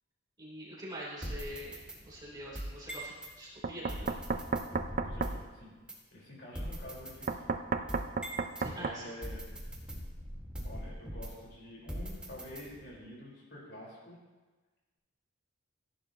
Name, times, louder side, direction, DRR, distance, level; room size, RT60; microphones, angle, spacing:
voice 1, 0.4-1.8 2.0-4.1 8.6-9.1, equal, 20° right, -6 dB, 3.3 m, -44 dB
sound 1, 1.2-3.3 3.9-5.5 5.9-6.0 6.5-8.7 9.2-11.5 11.9-13.0, equal, 5° right, 1.7 m, -42 dB
Knock, 3.6-5.4 7.3-9.0, right 4 dB, 40° right, 0.5 m, -33 dB
voice 2, 5.0-5.7 6.1-7.5 8.7-9.4 10.6-14.2, left 1 dB, 55° left, -4 dB, 4.2 m, -48 dB
15.0 x 11.0 x 2.9 m, 1.3 s
head